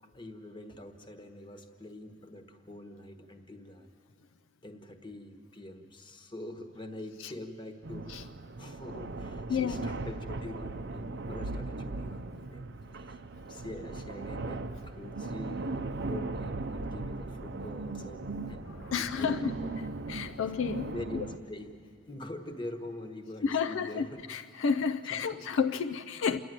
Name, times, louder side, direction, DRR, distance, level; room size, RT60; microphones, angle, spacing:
voice 1, 0.0-3.9 4.6-13.2 13.5-19.7 20.3-20.4 20.8-21.8 22.1-24.2 25.1-25.6 26.3-26.4, left 1 dB, 25° left, 6 dB, 1.2 m, -44 dB
sound 1, 7.8-21.4, right 3 dB, 55° right, 0.6 m, -38 dB
voice 2, 18.8-19.5 20.1-20.9 23.4-26.4, left 6 dB, 65° left, 9 dB, 0.4 m, -31 dB
27.5 x 11.0 x 9.2 m, 2.3 s
head